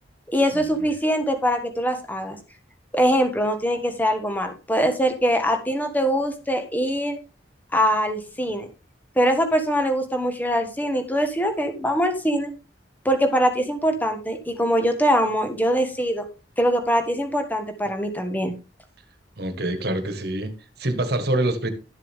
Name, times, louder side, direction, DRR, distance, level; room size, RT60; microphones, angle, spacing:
voice 1, 0.3-2.4 2.9-7.2 7.7-8.7 9.1-12.5 13.0-16.3 16.6-18.5, equal, 10° left, 1.6 m, -23 dB
voice 2, 19.4-21.7, right 1 dB, 60° right, 1.6 m, -26 dB
12.5 x 7.3 x 3.7 m
head